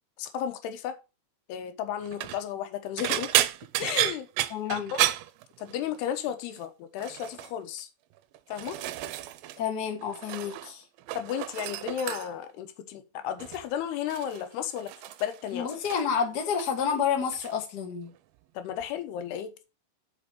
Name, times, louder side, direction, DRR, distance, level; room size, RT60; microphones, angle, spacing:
voice 1, 0.2-1.0 1.5-3.4 3.8-4.3 4.7-5.1 5.6-7.9 8.5-8.8 11.1-14.9 15.2-15.7 18.5-19.5, left 9 dB, 80° left, 3.0 m, -33 dB
sound 1, 2.0-2.4 3.0-6.0 6.3-6.6 7.0-7.5 8.2-9.6 9.9-10.7 11.0-12.5 13.4-13.7 14.1-16.2 16.4-17.0 17.3-17.5 18.8-18.9, right 15 dB, 80° right, 2.2 m, -32 dB
voice 2, 4.5-4.9 9.6-10.8 15.5-18.1, left 7 dB, 45° left, 1.3 m, -29 dB
6.7 x 5.2 x 5.7 m
omnidirectional pair, 4.6 m